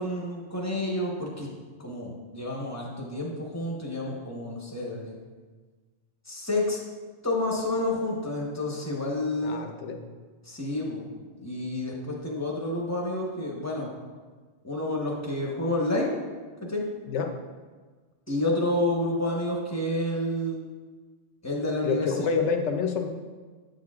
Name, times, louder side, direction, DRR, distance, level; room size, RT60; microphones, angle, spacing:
voice 1, 0.0-1.5 1.8-5.2 6.3-6.8 7.2-9.6 10.4-11.1 11.4-13.9 14.6-16.2 16.6-16.8 18.3-20.6 21.4-22.3, left 1 dB, 15° left, -2 dB, 1.0 m, -29 dB
voice 2, 9.4-10.0 17.1-17.3 21.8-23.1, left 5 dB, 80° left, 4 dB, 1.0 m, -27 dB
8.5 x 6.5 x 2.4 m, 1.4 s
omnidirectional pair, 1.2 m